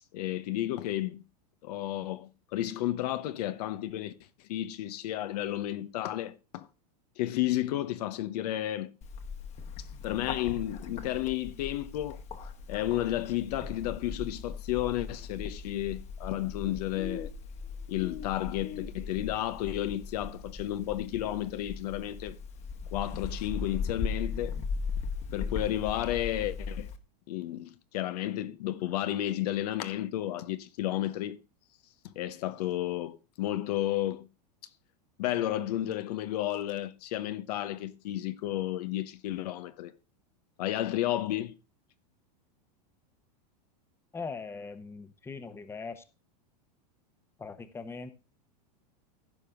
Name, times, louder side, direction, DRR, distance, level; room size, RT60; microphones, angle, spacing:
voice 1, 0.1-1.2 1.6-4.1 4.5-6.7 7.2-8.9 9.8-12.2 12.7-17.3 17.9-22.4 22.9-24.6 25.3-26.9 27.3-31.4 32.0-34.3 35.2-39.9 40.6-41.5, left 13 dB, 65° left, 1.0 m, -32 dB
Bird, 9.0-27.0, left 5 dB, 30° left, 1.5 m, -38 dB
voice 2, 44.1-46.0 47.4-48.1, left 4 dB, 10° left, 1.0 m, -40 dB
15.5 x 5.2 x 3.7 m
supercardioid pair, 130°, 21 cm